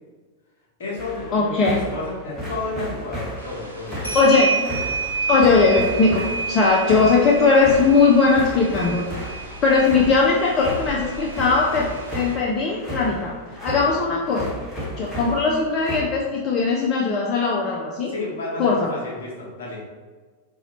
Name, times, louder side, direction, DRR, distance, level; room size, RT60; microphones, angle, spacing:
voice 1, 0.8-4.2 18.1-19.8, left 2 dB, 60° left, -4 dB, 1.1 m, -31 dB
sound 1, 1.0-16.0, equal, 5° left, 1.3 m, -34 dB
voice 2, 1.3-1.8 4.1-4.5 5.3-9.0 9.6-11.9 12.1-13.3 13.6-14.4 15.0-18.1 18.6-18.8, left 4 dB, 30° left, -3 dB, 0.5 m, -19 dB
sound 2, 3.4-12.3, right 4 dB, 90° left, 0.6 m, -30 dB
4.0 x 2.7 x 2.9 m, 1.4 s
figure-of-eight pair, 90°, 0 cm